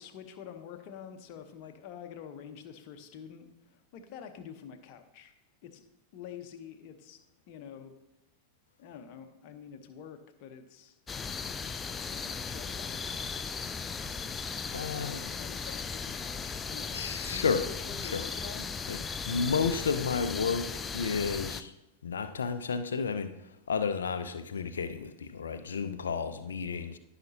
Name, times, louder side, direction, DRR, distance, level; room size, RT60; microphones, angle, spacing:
voice 1, 0.0-5.3 5.6-5.8 6.1-7.2 7.5-7.9 8.8-11.0 12.0-13.1 14.8-18.7, left 8 dB, 45° left, 6 dB, 0.9 m, -47 dB
sound 1, 11.1-21.6, left 5 dB, 20° left, 0.5 m, -37 dB
voice 2, 14.7-15.3 16.9-17.6 18.1-18.2 18.9-19.0 19.3-21.7 22.0-27.0, left 5 dB, 70° left, 10 dB, 0.6 m, -32 dB
14.5 x 5.9 x 2.8 m, 0.89 s
figure-of-eight pair, 90°, 0 cm